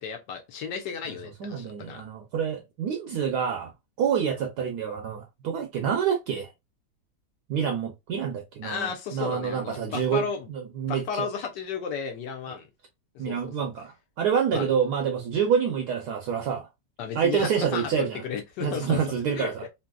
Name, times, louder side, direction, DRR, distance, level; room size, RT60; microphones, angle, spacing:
voice 1, 0.0-2.0 8.6-10.5 10.8-12.7 13.1-13.5 14.5-14.7 17.0-19.0 19.3-19.7, left 6 dB, 70° left, 1.3 m, -34 dB
voice 2, 1.4-3.7 4.0-6.5 7.5-11.3 13.2-16.7 17.1-18.2 18.6-19.7, right 7 dB, 70° right, 1.0 m, -27 dB
3.3 x 2.7 x 2.2 m
omnidirectional pair, 2.1 m